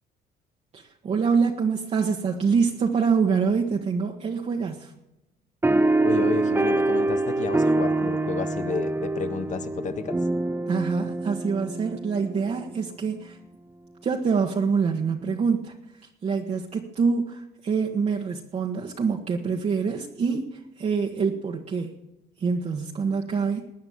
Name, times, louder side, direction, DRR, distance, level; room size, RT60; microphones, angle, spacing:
voice 1, 0.7-4.9 10.7-13.4 14.0-15.7 16.2-21.9 22.4-23.6, right 5 dB, 40° right, 0 dB, 1.5 m, -25 dB
sound 1, 5.6-12.5, right 2 dB, 15° right, 1.0 m, -25 dB
voice 2, 6.0-10.3, left 6 dB, 45° left, 8 dB, 1.7 m, -31 dB
20.0 x 9.5 x 7.2 m, 0.97 s
cardioid pair, 110°, 17 cm